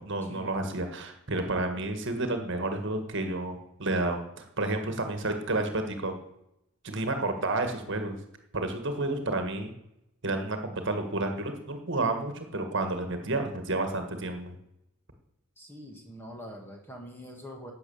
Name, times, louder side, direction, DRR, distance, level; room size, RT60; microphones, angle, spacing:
voice 1, 0.0-6.1 6.8-8.2 8.5-9.7 10.2-14.6, right 2 dB, 55° right, 6 dB, 1.6 m, -30 dB
voice 2, 15.6-17.7, equal, 10° left, 2 dB, 1.9 m, -44 dB
12.0 x 7.9 x 7.0 m, 0.84 s
head